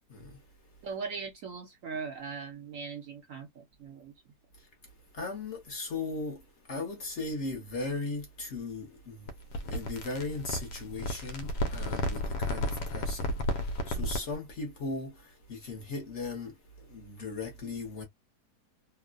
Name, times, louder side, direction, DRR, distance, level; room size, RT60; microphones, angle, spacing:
voice 1, 0.8-4.1, right 5 dB, 70° right, 0.8 m, -39 dB
voice 2, 5.1-6.4 6.7-9.3 9.6-13.4 13.9-16.5 16.9-18.0, left 3 dB, 55° left, 0.9 m, -37 dB
sound 1, 9.3-14.4, left 1 dB, 85° left, 1.2 m, -33 dB
3.0 x 2.0 x 2.3 m
omnidirectional pair, 1.8 m